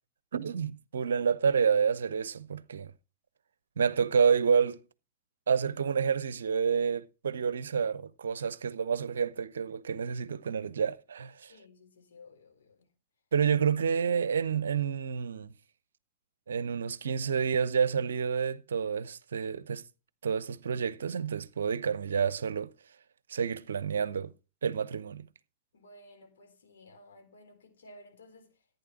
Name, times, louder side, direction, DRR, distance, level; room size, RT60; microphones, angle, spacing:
voice 1, 0.3-2.9 3.8-4.8 5.5-11.5 13.3-15.5 16.5-19.8 20.2-22.7 23.3-24.3 24.6-25.3, right 6 dB, 65° right, 0.7 m, -29 dB
voice 2, 11.5-12.8 25.7-28.5, left 1 dB, 65° left, 3.9 m, -55 dB
14.5 x 9.3 x 4.5 m
figure-of-eight pair, 90°, 0 cm